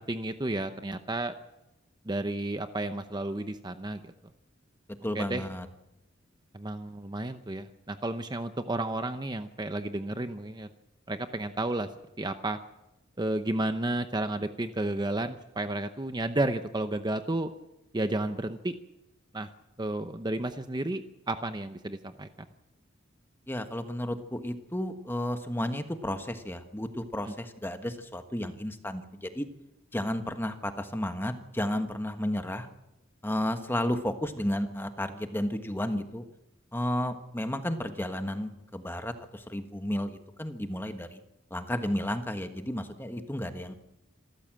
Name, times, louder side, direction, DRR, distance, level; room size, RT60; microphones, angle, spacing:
voice 1, 0.0-1.3 2.1-4.1 5.1-5.4 6.5-10.7 11.1-11.9 12.2-12.6 13.2-17.5 17.9-18.7 19.3-19.5 19.8-22.3, right 2 dB, 20° right, 8 dB, 0.8 m, -32 dB
voice 2, 5.0-5.7 23.5-29.4 29.9-32.7 33.2-36.2 36.7-41.2 41.5-43.7, left 1 dB, 10° left, 7 dB, 1.4 m, -32 dB
26.5 x 14.0 x 7.6 m, 0.93 s
head